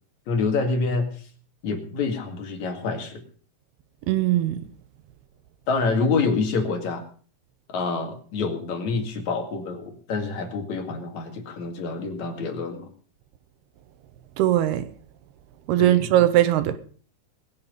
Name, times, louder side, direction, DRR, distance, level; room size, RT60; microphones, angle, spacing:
voice 1, 0.3-1.2 1.6-3.2 5.7-7.0 7.7-12.9 15.8-16.1, left 4 dB, 50° left, 2.7 m, -27 dB
voice 2, 4.1-4.6 14.4-14.9 15.7-16.8, right 13 dB, 70° right, 2.8 m, -20 dB
19.5 x 10.5 x 5.3 m
omnidirectional pair, 5.3 m